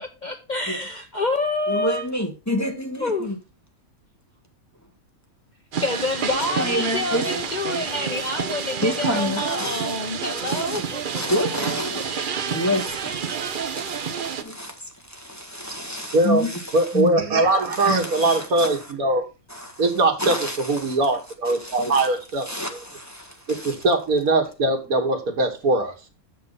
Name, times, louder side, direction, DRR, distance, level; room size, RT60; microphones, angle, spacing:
voice 1, 0.0-2.0 3.0-3.3 5.8-11.5 11.9-12.0, left 2 dB, 40° left, 0.8 m, -28 dB
voice 2, 1.7-3.4 6.3-7.3 8.8-9.9 10.5-17.2 17.7-18.7 19.5-19.8 20.2-21.0 21.6-22.1 22.4-23.7, equal, 10° left, 1.4 m, -29 dB
sound 1, 5.7-14.4, right 7 dB, 45° right, 0.7 m, -29 dB
voice 3, 16.1-16.4 16.7-19.2 19.8-22.8 23.5-25.9, right 2 dB, 90° right, 2.0 m, -21 dB
6.6 x 6.5 x 5.4 m
omnidirectional pair, 1.5 m